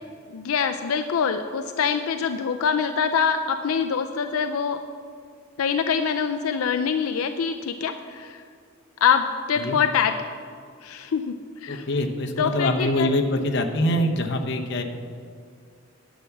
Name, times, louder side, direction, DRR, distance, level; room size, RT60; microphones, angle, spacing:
voice 1, 0.3-4.8 5.6-8.4 9.0-10.1 10.8-11.3 11.6-11.9 12.4-13.1, left 6 dB, 90° left, 7 dB, 0.4 m, -24 dB
voice 2, 11.7-14.8, left 1 dB, 55° left, 3 dB, 0.9 m, -24 dB
10.0 x 7.3 x 5.9 m, 2.2 s
head